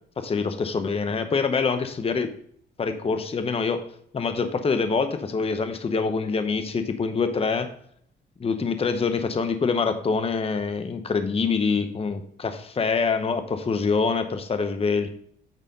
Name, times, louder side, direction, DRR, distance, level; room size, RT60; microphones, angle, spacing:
voice 1, 0.2-2.3 2.8-3.8 4.1-7.7 8.4-15.1, left 5 dB, 30° left, 8 dB, 0.8 m, -25 dB
9.1 x 4.1 x 5.3 m, 0.65 s
cardioid pair, 90°, 20 cm